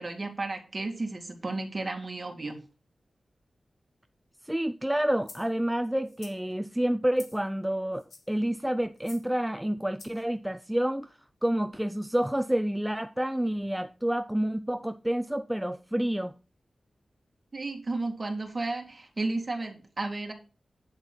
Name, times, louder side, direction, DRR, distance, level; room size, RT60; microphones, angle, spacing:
voice 1, 0.0-2.6 17.5-20.3, right 2 dB, 30° right, 2.3 m, -33 dB
voice 2, 4.4-16.3, right 1 dB, 5° right, 0.4 m, -29 dB
sound 1, 5.2-5.5 6.1-6.4 7.2-7.5 7.9-8.4 9.0-9.3 10.0-10.2, left 4 dB, 80° left, 2.3 m, -49 dB
9.0 x 7.9 x 3.9 m
wide cardioid pair, 110°, 0 cm